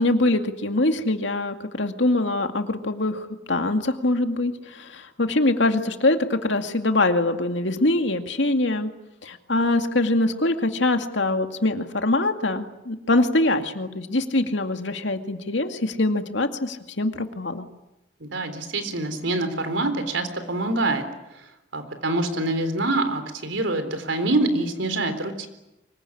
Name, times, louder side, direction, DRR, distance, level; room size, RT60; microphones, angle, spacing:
voice 1, 0.0-8.9 9.2-17.7, left 2 dB, 80° left, 6 dB, 2.3 m, -23 dB
voice 2, 18.2-21.0 21.3-21.5 21.7-25.5, right 2 dB, 90° right, 8 dB, 3.9 m, -25 dB
25.0 x 22.0 x 9.9 m, 0.95 s
head